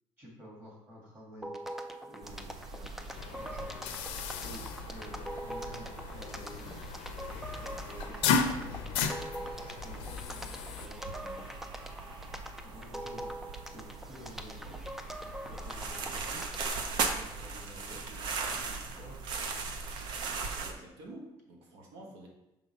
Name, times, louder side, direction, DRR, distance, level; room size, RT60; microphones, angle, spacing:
voice 1, 0.2-1.5 2.0-3.8 4.4-6.8 7.6-9.1 9.6-10.2 10.5-11.5 12.6-13.3 13.7-16.4 17.1-19.2, equal, 20° right, -3 dB, 1.8 m, -51 dB
sound 1, 1.4-16.8, right 1 dB, 5° right, 0.3 m, -44 dB
sound 2, 2.2-20.7, right 4 dB, 55° right, 0.7 m, -40 dB
sound 3, 3.2-10.9, left 6 dB, 90° left, 0.7 m, -35 dB
voice 2, 20.5-22.3, right 1 dB, 75° right, -1 dB, 1.5 m, -49 dB
5.4 x 3.8 x 5.4 m, 0.95 s
cardioid pair, 170°, 10 cm